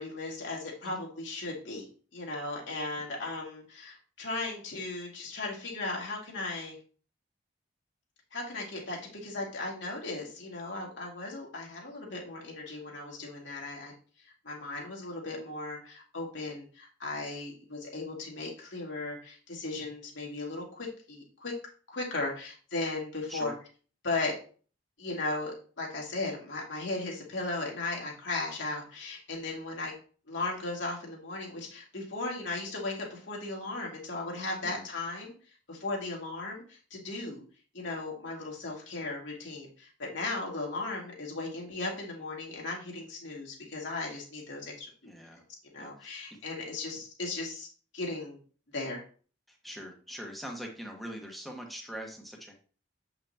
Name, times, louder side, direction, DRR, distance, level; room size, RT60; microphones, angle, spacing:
voice 1, 0.0-1.8 2.1-6.8 8.3-13.9 14.4-21.5 21.9-23.5 24.0-24.4 25.0-29.9 30.3-35.3 35.7-37.4 37.7-45.1 45.7-47.7 47.9-48.4 48.7-49.0, left 2 dB, 75° left, -2 dB, 2.4 m, -36 dB
voice 2, 45.0-45.4 45.8-46.2 49.5-52.5, equal, ahead, 0 dB, 1.3 m, -43 dB
7.9 x 5.6 x 2.9 m, 0.40 s
head